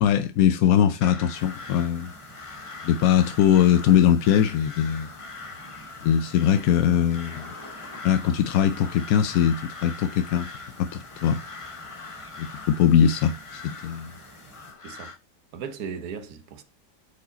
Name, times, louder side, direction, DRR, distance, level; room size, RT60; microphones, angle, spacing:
voice 1, 0.0-2.1 2.8-5.1 6.0-7.5 8.0-10.5 10.8-11.4 12.4-14.1, left 9 dB, 75° left, 0.8 m, -21 dB
Crow, 1.0-15.2, left 3 dB, 45° left, 0.4 m, -42 dB
sound 1, 1.3-14.7, right 1 dB, 15° left, 2.2 m, -49 dB
voice 2, 15.5-16.6, right 6 dB, 60° right, 1.3 m, -36 dB
8.1 x 4.8 x 3.8 m
omnidirectional pair, 2.0 m